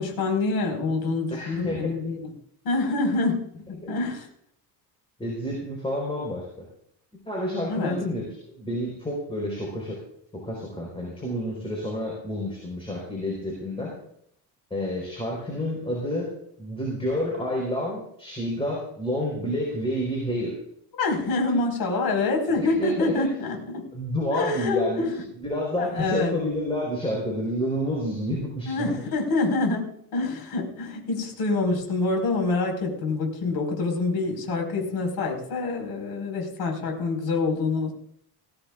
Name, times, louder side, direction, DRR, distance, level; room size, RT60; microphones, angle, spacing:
voice 1, 0.0-2.3 2.6-3.4 3.7-4.3 7.7-7.9 21.0-23.8 24.3-25.1 25.8-26.3 28.6-29.9 30.1-37.9, left 3 dB, 60° left, 2 dB, 4.9 m, -26 dB
voice 2, 1.3-2.1 3.8-4.0 5.2-6.7 7.3-8.2 8.5-10.0 10.3-13.9 14.7-16.3 16.6-20.5 22.5-23.3 23.9-28.8, left 1 dB, 15° left, -2 dB, 4.3 m, -29 dB
20.0 x 15.5 x 2.5 m, 0.72 s
cardioid pair, 150°, 42 cm